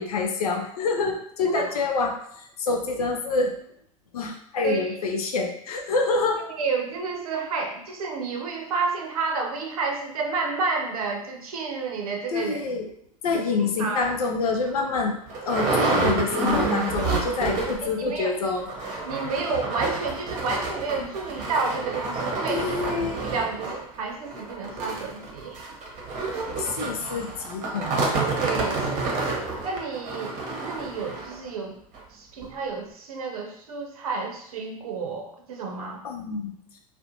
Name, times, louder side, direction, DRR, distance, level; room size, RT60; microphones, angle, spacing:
voice 1, 0.0-3.6 4.1-6.4 12.3-12.9 13.2-18.7 22.5-23.2 26.6-28.4 36.0-36.6, left 4 dB, 85° left, 3 dB, 0.5 m, -27 dB
voice 2, 6.6-12.7 13.3-13.5 13.8-14.1 17.8-18.3 19.1-23.7 24.0-25.6 28.4-29.3 29.6-31.8 32.1-36.0, right 4 dB, 80° right, 2 dB, 0.6 m, -30 dB
sound 1, 14.0-14.2 14.7-14.8 15.0-17.9 18.2-18.3 18.6-31.4 31.9-32.0 32.4-32.5, right 3 dB, 40° right, 0.8 m, -29 dB
2.4 x 2.1 x 2.8 m, 0.67 s
hypercardioid pair, 80°, 19 cm